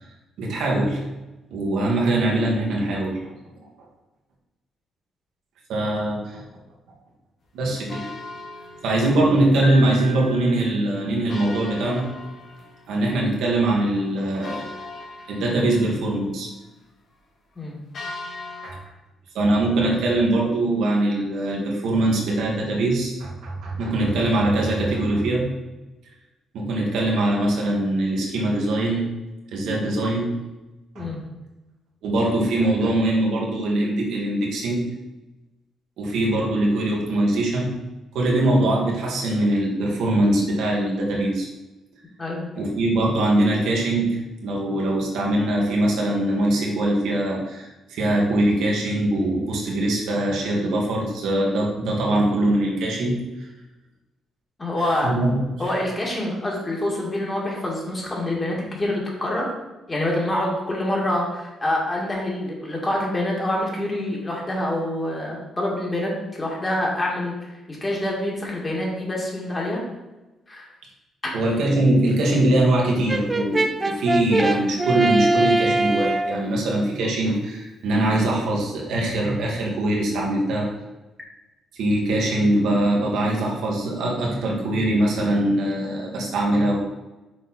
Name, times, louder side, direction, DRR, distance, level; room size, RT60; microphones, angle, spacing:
voice 1, 0.4-1.1 1.5-3.2 5.7-6.4 7.5-7.9 8.8-12.1 12.9-14.7 15.3-16.5 18.6-18.8 19.3-25.6 26.5-29.1 29.5-30.4 30.9-31.1 32.0-34.9 36.0-37.8 38.1-41.5 42.5-53.2 54.8-55.7 71.3-80.7 81.7-86.8, right 1 dB, 80° right, -2 dB, 1.5 m, -22 dB
sound 1, 7.9-9.6 9.9-10.0 10.2-10.3 11.3-13.2 13.6-13.7 14.4-16.2 17.9-18.7, left 3 dB, 55° left, 1.7 m, -39 dB
Piano, 9.6-11.7, left 2 dB, 85° left, 1.3 m, -38 dB
voice 2, 42.2-42.6 54.6-55.1 55.6-59.5 59.9-69.8 70.5-70.7 71.2-71.3, left 1 dB, 25° left, -2 dB, 2.0 m, -26 dB
Brass instrument, 73.1-76.4, right 2 dB, 20° right, 0.4 m, -22 dB
6.3 x 4.2 x 4.1 m, 1.1 s
cardioid pair, 90°, 0 cm